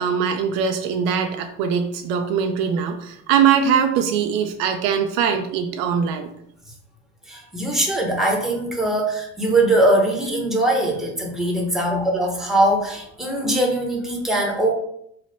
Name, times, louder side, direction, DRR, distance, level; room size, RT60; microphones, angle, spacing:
voice 1, 0.0-6.3, right 7 dB, 65° right, 5 dB, 0.5 m, -21 dB
voice 2, 7.3-14.7, right 1 dB, ahead, 0 dB, 1.0 m, -21 dB
3.1 x 2.0 x 4.0 m, 0.73 s
hypercardioid pair, 70°, 37 cm